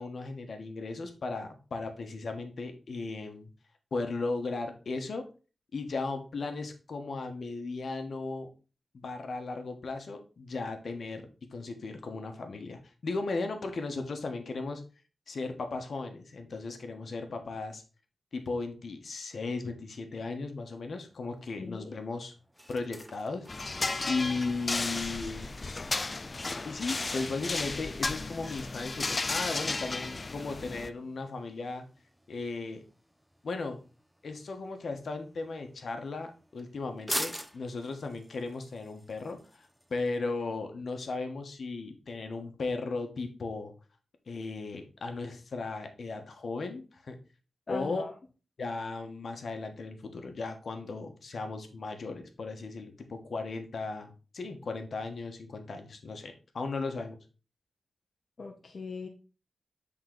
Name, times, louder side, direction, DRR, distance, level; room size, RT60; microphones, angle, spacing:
voice 1, 0.0-3.5 3.9-5.2 5.7-8.5 8.9-11.2 11.5-14.8 15.3-17.8 18.3-22.3 22.7-23.5 24.0-25.6 26.6-31.8 32.3-32.8 33.4-33.8 34.2-43.7 44.3-47.2 47.7-48.0 48.6-57.2, left 3 dB, 65° left, 5 dB, 1.2 m, -36 dB
sound 1, 20.6-40.2, equal, 5° right, 0.7 m, -46 dB
voice 2, 21.6-21.9 47.7-48.1 58.4-59.1, left 4 dB, 50° left, 1 dB, 0.8 m, -40 dB
sound 2, 23.5-30.9, left 3 dB, 35° left, 0.4 m, -34 dB
7.8 x 3.9 x 3.9 m, 0.34 s
wide cardioid pair, 100°, 0 cm